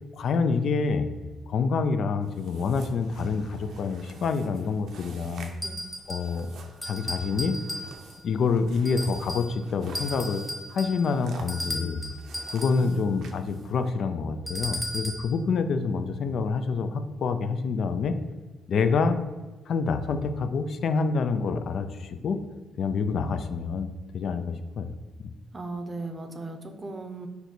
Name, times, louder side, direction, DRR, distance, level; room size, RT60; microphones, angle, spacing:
voice 1, 0.2-1.1 1.5-5.5 6.1-6.5 6.8-7.6 8.2-10.4 10.7-12.0 12.5-18.2 18.7-19.2 19.7-22.4 22.8-23.9 24.1-24.9 25.2-25.3, left 5 dB, 60° left, 9 dB, 0.4 m, -27 dB
sound 1, 2.2-13.9, right 4 dB, 70° right, 0.6 m, -49 dB
sound 2, 5.6-6.4 6.8-8.2 8.8-9.6 9.9-12.9 14.5-15.3, equal, 5° left, 1.0 m, -36 dB
voice 2, 25.5-27.3, right 2 dB, 30° right, 6 dB, 0.6 m, -37 dB
4.5 x 2.7 x 4.3 m, 1.3 s
cardioid pair, 90°, 0 cm